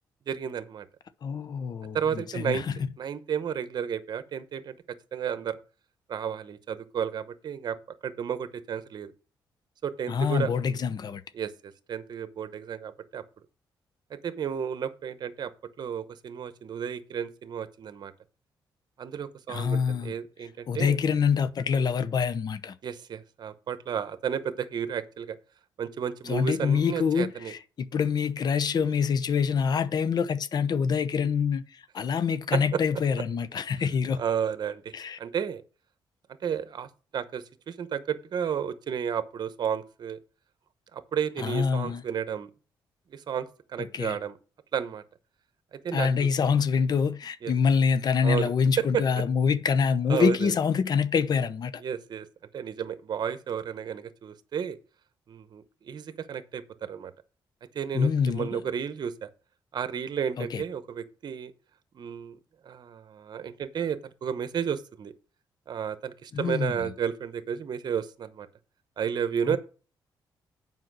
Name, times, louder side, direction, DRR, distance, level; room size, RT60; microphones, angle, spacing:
voice 1, 0.3-0.9 1.9-2.6 3.0-4.8 5.1-5.6 6.1-7.8 8.0-9.1 9.8-10.5 11.3-13.2 14.1-15.5 15.8-18.1 19.0-21.0 22.8-25.4 25.8-27.5 32.5-32.8 34.2-34.9 35.2-35.6 36.4-40.2 40.9-42.5 43.1-44.4 44.7-45.0 45.7-46.3 47.4-47.5 48.2-49.0 50.1-50.5 51.8-52.3 52.5-54.8 55.3-57.1 57.7-59.3 59.7-61.5 61.9-62.4 62.6-65.1 65.7-68.5 69.0-69.6, right 8 dB, 60° right, 0.9 m, -32 dB
voice 2, 1.2-2.7 10.1-11.2 19.5-20.1 20.7-22.7 26.3-34.2 34.9-35.2 41.4-42.0 43.8-44.2 45.9-51.7 57.9-58.6 60.4-60.6 66.3-66.9 69.5-69.6, left 6 dB, 55° left, 0.7 m, -26 dB
7.7 x 5.4 x 6.1 m
cardioid pair, 90°, 8 cm